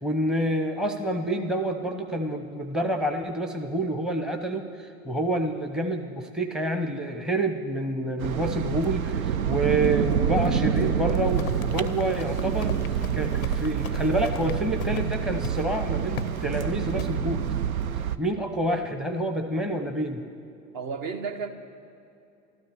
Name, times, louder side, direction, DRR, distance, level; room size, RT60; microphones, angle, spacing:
voice 1, 0.0-17.4 18.2-20.2, right 1 dB, ahead, 5 dB, 0.8 m, -28 dB
sound 1, 8.2-18.2, right 8 dB, 85° right, 0.6 m, -27 dB
Run, 11.2-15.1 15.4-15.7 16.1-16.5 17.0-17.2, left 12 dB, 85° left, 0.5 m, -40 dB
voice 2, 20.7-21.5, right 5 dB, 45° right, 7 dB, 1.3 m, -32 dB
13.0 x 13.0 x 7.0 m, 2.7 s
hypercardioid pair, 85°, 41 cm